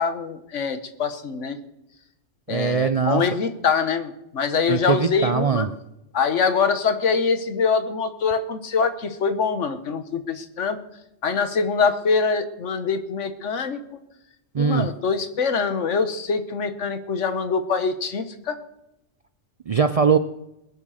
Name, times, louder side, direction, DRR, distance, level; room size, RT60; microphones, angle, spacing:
voice 1, 0.0-1.6 2.5-5.7 6.1-10.8 11.2-13.8 14.6-18.6, left 5 dB, 80° left, 10 dB, 1.5 m, -24 dB
voice 2, 2.5-3.2 4.7-5.7 14.5-14.9 19.7-20.2, right 6 dB, 50° right, 11 dB, 0.4 m, -21 dB
20.5 x 7.2 x 6.5 m, 0.88 s
omnidirectional pair, 1.2 m